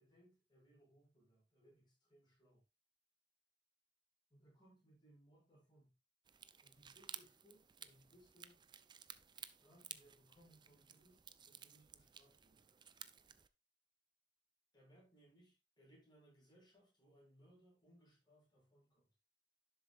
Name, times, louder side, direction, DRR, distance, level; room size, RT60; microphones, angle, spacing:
voice 1, 0.0-2.6 4.3-5.9 6.6-8.6 9.4-12.7 14.7-19.1, right 1 dB, 25° left, 6.2 m, -68 dB
sound 1, 6.3-13.5, right 8 dB, 25° right, 0.5 m, -56 dB
11.0 x 7.0 x 2.5 m
head